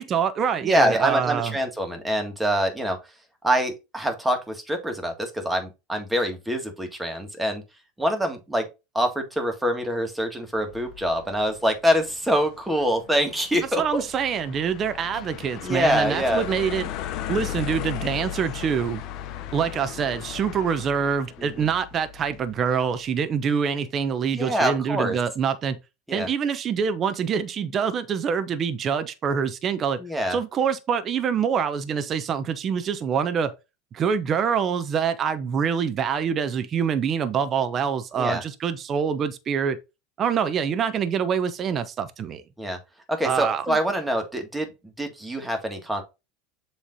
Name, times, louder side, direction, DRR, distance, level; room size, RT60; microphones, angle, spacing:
voice 1, 0.0-1.6 13.8-16.9 17.3-19.0 19.5-25.8 26.1-30.0 30.3-33.5 33.9-39.8 40.2-42.4 43.2-43.8, right 7 dB, 40° right, 0.8 m, -25 dB
voice 2, 0.6-3.0 3.4-7.6 8.0-8.7 9.0-14.0 15.6-16.4 21.4-21.5 24.3-25.2 26.1-26.3 30.0-30.4 38.2-38.4 42.6-42.8 43.1-44.7 45.0-46.0, equal, 10° right, 1.7 m, -25 dB
sound 1, 10.6-22.7, left 11 dB, 55° left, 0.8 m, -36 dB
7.4 x 3.2 x 4.0 m
hypercardioid pair, 100°, 0 cm